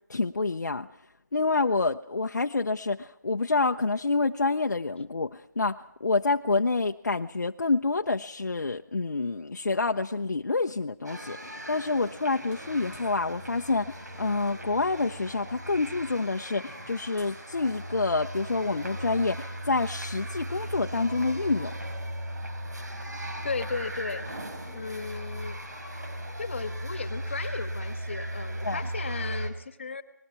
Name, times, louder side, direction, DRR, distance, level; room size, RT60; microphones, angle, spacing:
voice 1, 0.1-0.9 1.3-21.7 28.6-28.8, left 3 dB, 70° left, 4 dB, 0.8 m, -28 dB
sound 1, 11.0-29.5, right 1 dB, 65° right, 5.4 m, -37 dB
sound 2, 12.5-13.3 14.7-14.8 15.0-15.2 15.5-18.1, right 1 dB, 10° right, 4.7 m, -58 dB
voice 2, 23.4-24.2 24.7-25.6 26.4-30.0, left 4 dB, 40° left, 11 dB, 1.5 m, -35 dB
30.0 x 20.5 x 4.7 m, 0.84 s
figure-of-eight pair, 170°, 10 cm